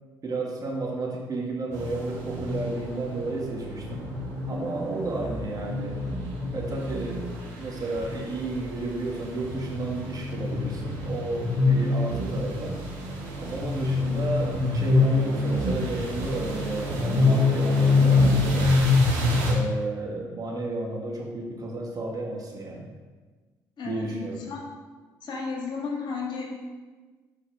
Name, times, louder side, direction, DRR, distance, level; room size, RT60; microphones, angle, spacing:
voice 1, 0.2-4.1 4.5-6.0 6.5-7.2 7.6-12.8 13.4-18.7 19.4-22.9 23.8-24.4, right 2 dB, 40° right, -1 dB, 2.2 m, -32 dB
sound 1, 1.7-19.5, left 3 dB, 80° right, 2.7 m, -26 dB
voice 2, 23.8-24.6 25.2-26.5, left 4 dB, 55° left, -1 dB, 2.3 m, -33 dB
7.8 x 5.7 x 5.1 m, 1.3 s
hypercardioid pair, 50°, 10 cm